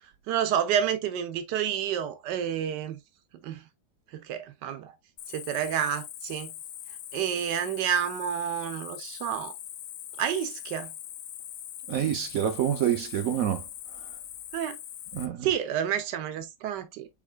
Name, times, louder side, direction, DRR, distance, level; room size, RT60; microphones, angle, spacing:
voice 1, 0.0-3.0 3.4-3.7 4.1-5.0 5.3-6.5 7.1-9.5 10.2-10.9 14.5-14.8 15.4-17.1, right 9 dB, 90° right, 1.4 m, -29 dB
Cricket, 5.2-15.3, left 11 dB, 75° left, 1.1 m, -42 dB
voice 2, 11.9-13.6 15.1-15.5, right 10 dB, 65° right, 0.9 m, -27 dB
4.9 x 4.9 x 2.2 m
omnidirectional pair, 1.8 m